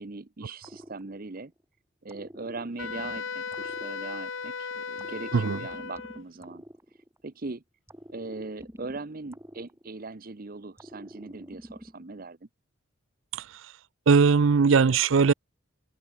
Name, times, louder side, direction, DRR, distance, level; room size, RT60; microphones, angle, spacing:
voice 1, 0.0-1.5 2.0-6.6 7.2-7.6 8.1-12.4, right 3 dB, 45° right, 0.8 m, -40 dB
sound 1, 0.6-1.6 2.1-4.5 5.0-7.4 7.9-10.3 10.8-12.3, equal, 10° right, 2.6 m, -48 dB
Wind instrument woodwind instrument, 2.8-6.2, left 5 dB, 65° left, 1.1 m, -36 dB
voice 2, 14.1-15.3, right 5 dB, 65° right, 0.5 m, -19 dB
head